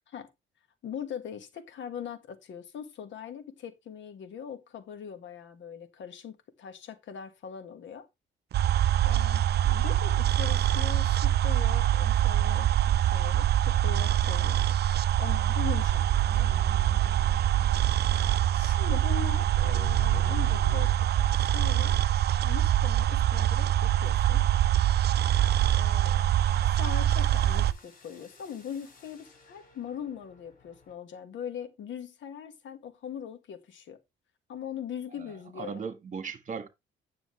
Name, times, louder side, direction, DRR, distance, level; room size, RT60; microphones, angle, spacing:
voice 1, 0.8-8.1 9.0-14.6 15.2-16.1 16.3-16.5 17.8-17.9 18.5-22.0 22.4-24.4 25.7-26.2 26.6-34.0 34.5-35.8, left 8 dB, 70° left, 1.7 m, -41 dB
sound 1, 8.5-27.7, right 12 dB, 55° right, 0.5 m, -24 dB
sound 2, 15.5-20.9, left 8 dB, 30° left, 5.3 m, -45 dB
sound 3, 24.1-30.9, left 3 dB, 45° left, 3.6 m, -58 dB
voice 2, 35.1-36.7, right 5 dB, 40° right, 1.7 m, -38 dB
9.7 x 6.7 x 3.3 m
cardioid pair, 90°, 20 cm